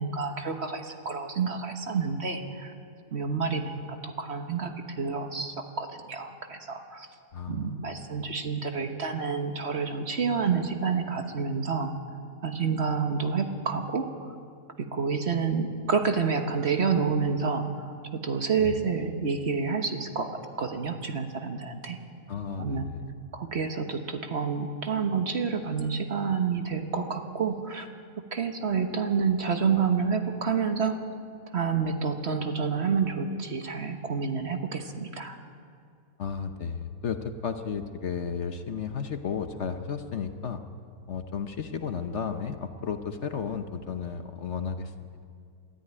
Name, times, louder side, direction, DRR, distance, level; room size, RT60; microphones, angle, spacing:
voice 1, 0.0-2.7 3.1-7.1 7.5-11.9 12.4-14.3 14.9-22.0 22.6-22.9 23.3-27.9 28.3-31.0 31.5-35.4, right 5 dB, 45° right, 6 dB, 1.4 m, -29 dB
voice 2, 7.3-7.8 18.6-18.7 22.3-23.0 36.2-40.6 41.1-44.9, left 6 dB, 55° left, 7 dB, 1.1 m, -33 dB
21.0 x 13.0 x 9.6 m, 2.3 s
omnidirectional pair, 1.6 m